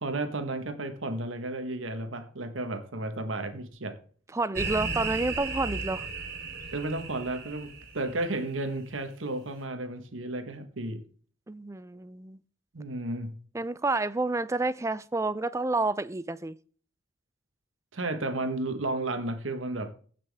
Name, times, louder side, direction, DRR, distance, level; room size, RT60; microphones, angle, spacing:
voice 1, 0.0-4.0 6.7-11.0 12.7-13.3 17.9-19.9, right 2 dB, 85° right, 1.4 m, -33 dB
voice 2, 4.3-6.1 11.5-12.4 13.5-16.6, right 2 dB, 15° right, 0.4 m, -29 dB
sound 1, 4.5-8.4, right 4 dB, 55° right, 2.8 m, -35 dB
16.0 x 6.0 x 3.5 m
head